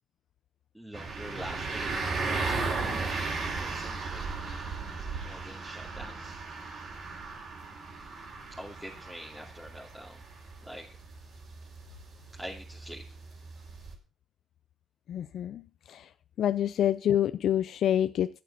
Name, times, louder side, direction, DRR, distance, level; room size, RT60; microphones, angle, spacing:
voice 1, 0.7-4.4 5.2-6.4 8.5-10.2 10.6-10.9 12.3-13.0, equal, 5° right, 2.7 m, -45 dB
sound 1, 0.9-13.9, right 4 dB, 60° right, 4.0 m, -36 dB
voice 2, 15.1-16.1 16.4-18.4, left 10 dB, 70° left, 0.5 m, -27 dB
12.0 x 8.5 x 5.7 m
cardioid pair, 90°, 0 cm